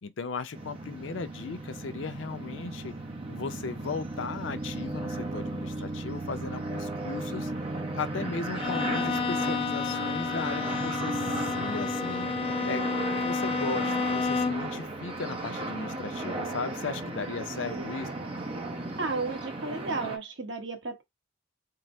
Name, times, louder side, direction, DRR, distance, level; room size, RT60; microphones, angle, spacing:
voice 1, 0.0-2.9 3.3-7.5 7.9-12.3 12.7-13.0 13.2-18.1, left 4 dB, 85° left, 0.6 m, -36 dB
sound 1, 0.5-20.2, right 2 dB, 30° right, 0.7 m, -35 dB
Bowed string instrument, 8.5-14.8, left 5 dB, 30° left, 0.5 m, -30 dB
voice 2, 17.6-17.9 19.0-21.0, right 3 dB, 70° right, 1.1 m, -33 dB
3.7 x 2.0 x 4.3 m
head